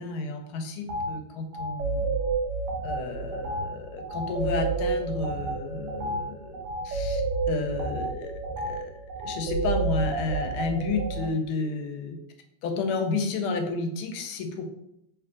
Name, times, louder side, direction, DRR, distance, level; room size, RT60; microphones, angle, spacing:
voice 1, 0.0-2.1 2.8-6.6 6.8-7.2 7.5-8.9 9.2-12.2 12.6-14.7, left 4 dB, 80° left, 5 dB, 1.4 m, -31 dB
sound 1, 0.9-1.1 1.5-11.3, right 3 dB, 70° right, 1.2 m, -30 dB
3.4 x 3.0 x 3.7 m, 0.80 s
omnidirectional pair, 2.4 m